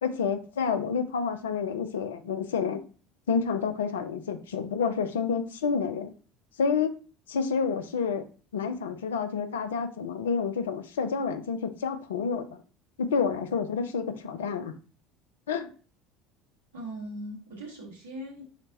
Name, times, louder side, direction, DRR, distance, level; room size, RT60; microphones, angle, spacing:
voice 1, 0.0-2.8 3.3-6.1 6.6-7.0 7.3-8.2 8.5-12.6 13.0-14.7 15.5-15.7, left 6 dB, 70° left, 9 dB, 0.4 m, -29 dB
voice 2, 16.7-18.4, right 1 dB, 75° right, -2 dB, 1.2 m, -39 dB
5.0 x 2.1 x 2.7 m, 0.38 s
figure-of-eight pair, 65°, 0 cm